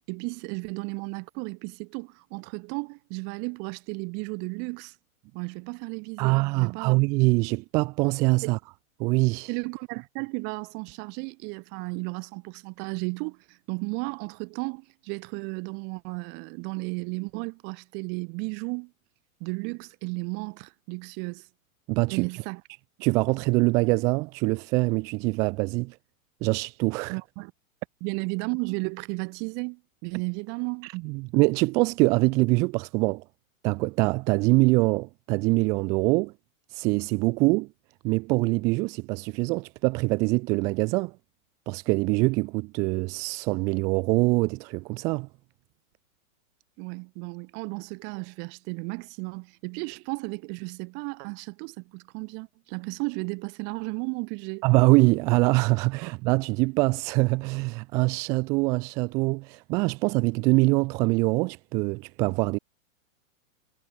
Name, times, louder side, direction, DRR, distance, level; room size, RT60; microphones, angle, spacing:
voice 1, 0.1-4.9 5.3-7.0 8.4-8.5 9.5-18.9 19.4-21.5 22.1-22.6 27.1-27.5 28.0-30.9 46.8-54.6, right 35 dB, 25° right, 2.9 m, -34 dB
voice 2, 6.2-8.6 9.0-9.5 21.9-22.3 23.0-26.0 26.4-27.2 30.9-33.2 33.6-36.3 36.7-37.7 38.0-41.1 41.7-45.3 54.6-62.6, right 26 dB, 10° right, 0.5 m, -24 dB
supercardioid pair, 175°, 42 cm